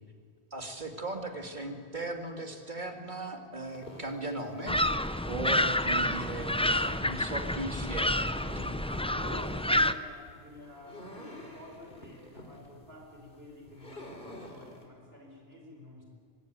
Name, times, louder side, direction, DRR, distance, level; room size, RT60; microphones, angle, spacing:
voice 1, 0.5-4.8 5.3-8.8, right 2 dB, 45° right, 4 dB, 2.7 m, -38 dB
sound 1, 3.6-14.9, left 1 dB, 55° left, 3.6 m, -49 dB
sound 2, 4.7-9.9, left 1 dB, 5° left, 0.5 m, -29 dB
voice 2, 8.8-16.0, left 1 dB, 65° right, 0 dB, 5.8 m, -49 dB
25.5 x 20.0 x 9.5 m, 2.3 s
omnidirectional pair, 1.1 m